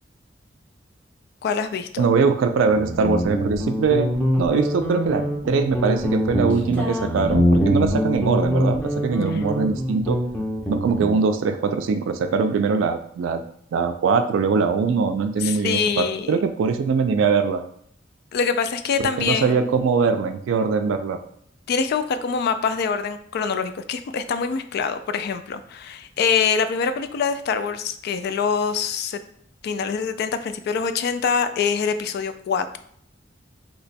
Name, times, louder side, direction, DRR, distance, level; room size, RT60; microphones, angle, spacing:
voice 1, 1.4-2.1 9.3-9.4 15.4-16.3 18.3-19.6 21.7-29.2 29.6-32.8, left 6 dB, 55° left, 11 dB, 0.3 m, -24 dB
voice 2, 2.0-4.1 4.4-10.2 10.7-13.4 13.7-17.6 19.0-21.2, right 5 dB, 80° right, 8 dB, 0.3 m, -22 dB
Guitar, 2.7-11.2, equal, 5° left, 0.6 m, -24 dB
2.9 x 2.2 x 4.1 m, 0.65 s
head